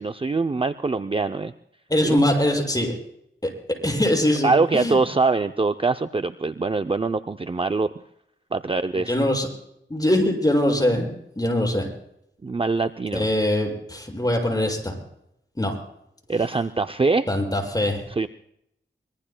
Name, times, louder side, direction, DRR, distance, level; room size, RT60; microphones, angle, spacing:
voice 1, 0.0-1.5 2.0-2.3 4.4-7.9 8.5-9.1 12.4-13.3 16.3-17.3 18.1-18.3, right 3 dB, 25° right, 8 dB, 0.5 m, -23 dB
voice 2, 1.9-2.9 3.4-3.5 3.8-5.0 9.1-9.5 9.9-11.9 13.1-14.9 15.6-15.7 17.3-18.0, left 1 dB, 20° left, 0 dB, 6.5 m, -22 dB
25.0 x 22.0 x 2.2 m, 0.76 s
wide cardioid pair, 75°, 20 cm